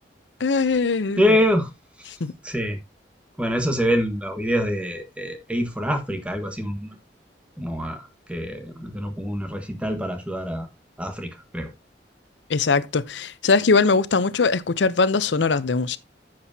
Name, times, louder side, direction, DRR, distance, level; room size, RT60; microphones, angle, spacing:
voice 1, 0.4-1.4 2.2-2.3 12.5-16.0, left 4 dB, 90° left, 0.6 m, -21 dB
voice 2, 1.2-1.7 2.4-2.8 3.4-6.9 7.6-8.0 8.3-10.7 11.0-11.7, equal, 5° right, 1.4 m, -25 dB
10.0 x 7.7 x 2.7 m
head